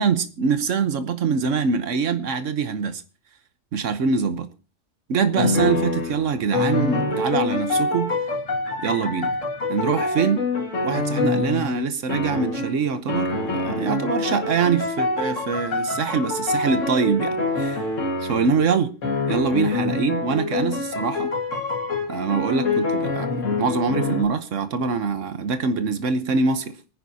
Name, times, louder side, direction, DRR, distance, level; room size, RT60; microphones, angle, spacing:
voice 1, 0.0-3.0 3.7-4.5 5.1-8.1 8.8-9.3 9.7-10.5 10.8-17.9 18.2-18.9 19.3-21.3 22.1-26.7, right 5 dB, 80° right, 1.3 m, -24 dB
sound 1, 5.4-11.8 12.1-12.8 13.1-18.6 19.0-24.2, left 3 dB, 85° left, 2.1 m, -25 dB
26.0 x 9.9 x 2.7 m
omnidirectional pair, 1.3 m